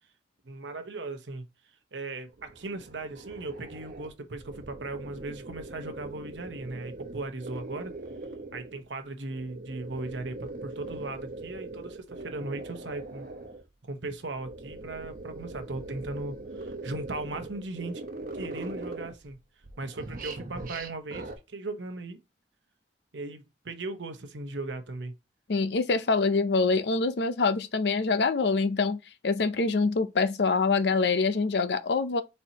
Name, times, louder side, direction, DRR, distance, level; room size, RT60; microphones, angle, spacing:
voice 1, 0.4-1.4 1.9-7.9 8.5-13.3 13.8-18.0 18.3-19.4 19.8-22.2 23.1-25.1, right 2 dB, 80° right, 0.9 m, -38 dB
sound 1, 2.3-8.8 9.3-13.6 14.2-19.3 19.6-21.4, right 2 dB, 50° right, 0.9 m, -41 dB
voice 2, 25.5-32.2, left 4 dB, 65° left, 0.5 m, -25 dB
4.5 x 4.3 x 2.8 m
head